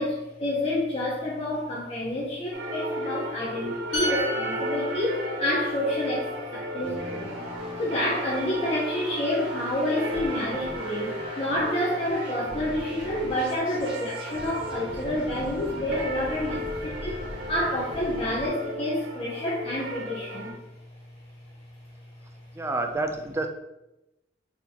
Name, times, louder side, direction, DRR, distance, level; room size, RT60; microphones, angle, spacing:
voice 1, 0.0-7.3 7.8-17.2 17.5-20.5, left 1 dB, 35° left, -5 dB, 0.7 m, -29 dB
sound 1, 2.5-20.5, equal, 70° right, 0.7 m, -35 dB
sound 2, 3.9-7.5 7.9-8.1, right 1 dB, 80° left, 1.5 m, -35 dB
sound 3, 6.8-18.5, equal, 30° right, 1.3 m, -40 dB
voice 2, 22.5-23.5, right 2 dB, 15° right, 5 dB, 0.4 m, -28 dB
4.1 x 3.6 x 2.9 m, 0.94 s
head